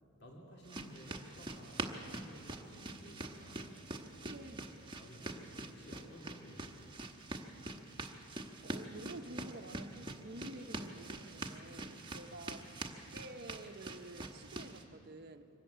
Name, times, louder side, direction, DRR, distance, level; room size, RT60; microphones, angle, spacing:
voice 1, 0.2-3.8 5.0-7.3 12.3-12.6, equal, 50° left, -1 dB, 2.7 m, -55 dB
sound 1, 0.6-14.8, right 2 dB, 20° right, 1.3 m, -45 dB
voice 2, 4.2-4.9 8.6-15.5, right 1 dB, 45° right, 7 dB, 1.0 m, -50 dB
24.5 x 14.0 x 9.3 m, 3.0 s
head